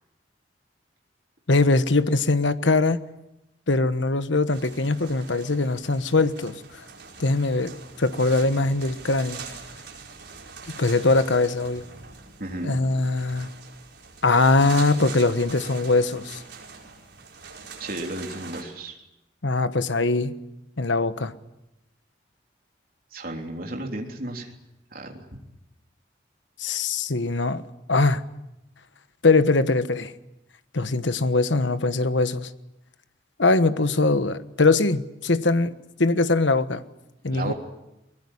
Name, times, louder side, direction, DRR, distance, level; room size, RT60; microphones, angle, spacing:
voice 1, 1.5-3.0 3.7-6.8 7.2-7.7 8.0-9.4 10.8-11.8 12.6-13.5 14.2-16.4 19.4-20.3 20.8-21.3 26.6-27.6 27.9-28.2 29.2-30.1 30.7-32.5 33.4-35.7 36.0-36.8 37.2-37.5, left 3 dB, 85° left, 12 dB, 1.3 m, -22 dB
sound 1, 4.5-18.6, right 5 dB, 70° right, 5.1 m, -43 dB
voice 2, 12.4-12.8 17.8-19.0 23.1-24.5 24.9-25.2 37.3-37.5, right 1 dB, 50° right, 2 dB, 3.4 m, -33 dB
22.0 x 21.0 x 10.0 m, 0.91 s
head